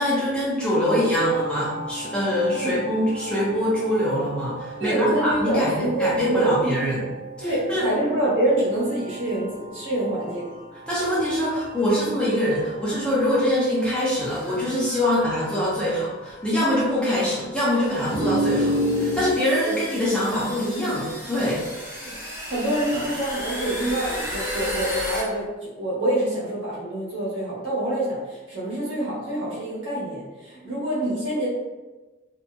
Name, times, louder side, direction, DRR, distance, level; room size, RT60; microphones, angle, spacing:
voice 1, 0.0-7.0 7.4-7.9 10.9-21.6, left 1 dB, 5° left, -8 dB, 0.6 m, -24 dB
sound 1, 0.8-19.2, equal, 55° right, 0.8 m, -34 dB
voice 2, 4.8-6.7 7.4-10.5 19.6-19.8 22.0-22.2 22.5-31.5, right 1 dB, 75° right, -8 dB, 1.3 m, -26 dB
sound 2, 14.2-14.6 15.5-15.6 16.7-16.8 17.6-25.2, left 1 dB, 15° right, 1.3 m, -34 dB
2.7 x 2.7 x 2.2 m, 1.2 s
head